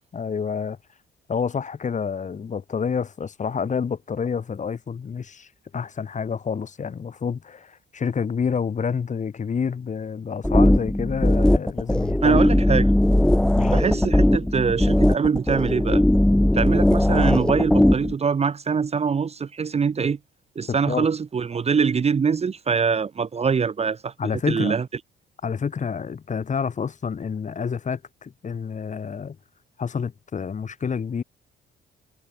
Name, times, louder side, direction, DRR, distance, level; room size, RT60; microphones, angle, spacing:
voice 1, 0.1-0.8 1.3-12.5 13.5-13.8 17.1-17.2 20.7-21.1 24.2-24.8 25.4-29.4 29.8-31.2, left 6 dB, 40° left, 1.4 m, -28 dB
sound 1, 10.4-18.1, left 1 dB, 5° left, 0.5 m, -19 dB
voice 2, 12.2-12.9 13.7-16.0 16.5-20.2 20.6-24.1 24.5-24.8, right 6 dB, 30° right, 0.7 m, -23 dB
cardioid pair, 90°, 20 cm